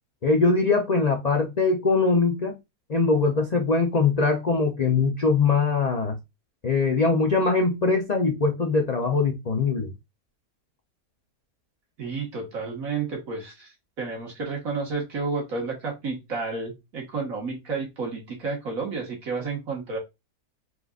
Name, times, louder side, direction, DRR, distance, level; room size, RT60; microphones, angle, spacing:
voice 1, 0.2-2.6 2.9-6.2 6.6-9.9, left 4 dB, 70° left, 0.3 m, -22 dB
voice 2, 12.0-20.0, right 4 dB, 55° right, 2.0 m, -31 dB
4.5 x 4.0 x 2.4 m
omnidirectional pair, 1.7 m